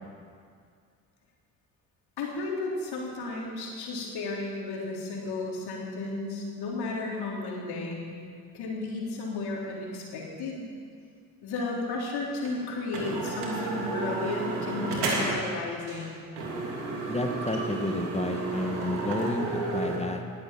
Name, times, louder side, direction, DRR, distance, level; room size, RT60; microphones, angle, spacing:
voice 1, 2.2-8.2 8.5-10.7 11.4-16.2, left 3 dB, 60° left, -2 dB, 3.6 m, -33 dB
sound 1, 12.5-12.6 12.9-15.5 15.9-16.1 16.4-20.0, right 3 dB, 75° right, 2.7 m, -32 dB
voice 2, 17.1-19.5 19.7-20.2, left 2 dB, 15° left, 4 dB, 1.7 m, -31 dB
19.5 x 8.2 x 7.5 m, 2.2 s
hypercardioid pair, 50°, 43 cm